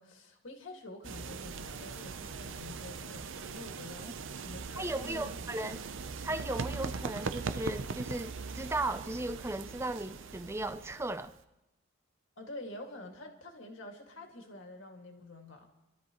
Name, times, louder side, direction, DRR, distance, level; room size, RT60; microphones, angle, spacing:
voice 1, 0.0-5.8 12.4-15.7, left 2 dB, 60° left, 2.0 m, -47 dB
sound 1, 1.0-11.4, right 4 dB, 60° right, 0.6 m, -40 dB
voice 2, 4.8-5.8 6.2-11.3, right 2 dB, 10° right, 0.4 m, -36 dB
28.0 x 13.0 x 3.0 m
head